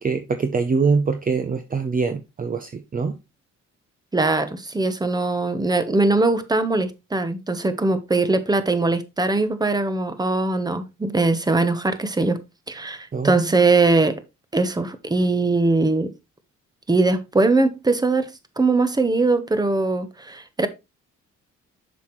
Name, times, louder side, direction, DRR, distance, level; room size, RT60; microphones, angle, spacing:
voice 1, 0.0-3.2 13.1-13.5, right 4 dB, 30° right, 0.7 m, -23 dB
voice 2, 4.1-12.4 12.7-14.2 14.5-16.1 16.9-18.3 18.6-20.7, right 3 dB, 15° right, 1.0 m, -21 dB
7.0 x 6.2 x 3.1 m
cardioid pair, 90°, 30 cm